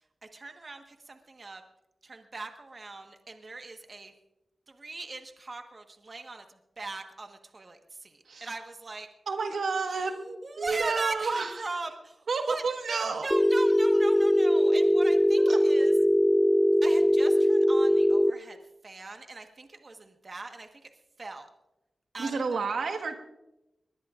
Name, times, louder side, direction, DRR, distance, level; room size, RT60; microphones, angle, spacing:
voice 1, 0.2-1.6 2.0-4.1 4.7-6.4 6.8-9.1 9.9-15.9 16.8-18.6 18.8-20.9 21.2-21.5 22.1-22.7, right 3 dB, 45° right, 5 dB, 1.4 m, -40 dB
voice 2, 9.3-10.2 10.6-11.6 12.3-13.3 15.4-15.6 22.2-23.2, right 4 dB, 85° right, 4 dB, 1.5 m, -30 dB
Telephone, 13.3-18.3, equal, 10° left, 0.4 m, -21 dB
21.5 x 20.0 x 2.5 m, 0.93 s
wide cardioid pair, 85°, 0 cm